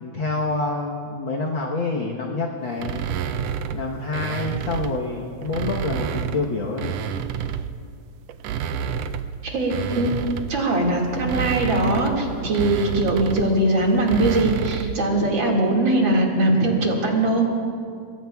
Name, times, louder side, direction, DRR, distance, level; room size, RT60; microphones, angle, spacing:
voice 1, 0.0-3.0 3.7-7.0, left 3 dB, 55° left, -1 dB, 1.5 m, -27 dB
sound 1, 2.8-5.0 5.4-7.8 8.3-15.0, right 8 dB, 85° right, 1.5 m, -29 dB
voice 2, 9.4-10.1 10.5-17.5, right 1 dB, 45° right, -1 dB, 2.7 m, -21 dB
26.0 x 22.0 x 2.4 m, 2.3 s
omnidirectional pair, 3.3 m